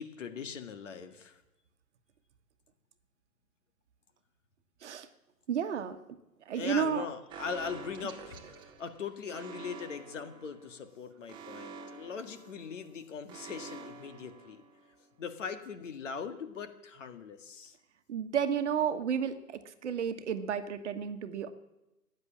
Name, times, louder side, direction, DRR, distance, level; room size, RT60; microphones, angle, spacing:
voice 1, 0.0-1.4 6.6-14.6 15.2-17.7, left 6 dB, 50° left, 8 dB, 1.9 m, -40 dB
voice 2, 5.5-6.0 6.4-7.1 18.1-21.5, right 7 dB, 45° right, 9 dB, 1.4 m, -32 dB
Alarm, 7.3-15.1, right 5 dB, 10° right, 1.1 m, -48 dB
15.0 x 9.9 x 7.4 m, 0.97 s
figure-of-eight pair, 135°, 46 cm